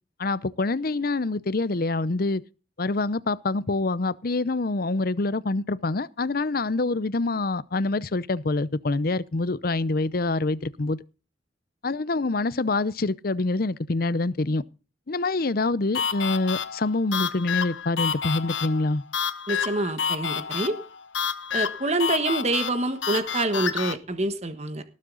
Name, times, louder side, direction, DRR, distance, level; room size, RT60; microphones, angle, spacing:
voice 1, 0.2-2.4 2.8-11.0 11.8-14.6 15.1-19.0, left 2 dB, 50° left, 0.7 m, -26 dB
sound 1, 15.9-24.0, left 7 dB, 90° left, 1.1 m, -29 dB
voice 2, 19.5-20.8 21.5-24.8, right 2 dB, 35° right, 1.4 m, -26 dB
18.5 x 7.6 x 3.9 m
head